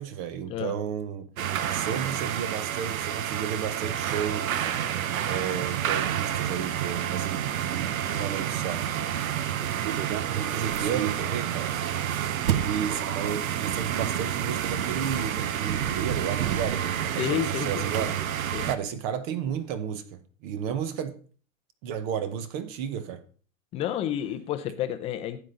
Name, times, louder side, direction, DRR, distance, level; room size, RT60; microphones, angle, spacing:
voice 1, 0.0-1.3 1.7-4.7 5.2-8.8 9.8-10.0 10.3-11.8 12.5-18.2 18.7-21.2 21.8-23.2, right 8 dB, 25° right, 0.7 m, -33 dB
sound 1, 1.4-18.8, right 10 dB, 70° right, 1.0 m, -29 dB
voice 2, 10.6-10.9 17.2-18.1 18.5-18.7 23.7-25.4, left 10 dB, 15° left, 0.6 m, -31 dB
12.0 x 8.3 x 3.8 m
hypercardioid pair, 150°, 42 cm